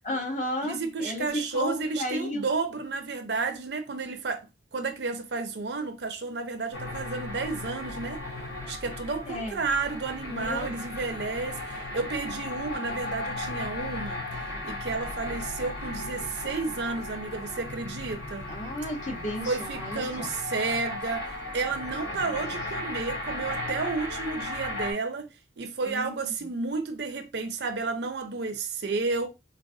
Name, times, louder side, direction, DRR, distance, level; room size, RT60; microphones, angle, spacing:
voice 1, 0.0-2.4 9.3-9.6 10.3-10.8 18.5-20.3 22.1-22.6 25.8-26.5, left 1 dB, 40° left, 0.8 m, -34 dB
voice 2, 0.6-4.5 4.7-8.2 8.7-14.2 14.6-18.5 19.5-25.3 25.6-29.3, right 4 dB, 65° right, 0.5 m, -31 dB
sound 1, 6.7-24.9, left 2 dB, 75° left, 1.8 m, -36 dB
3.9 x 2.1 x 2.6 m
head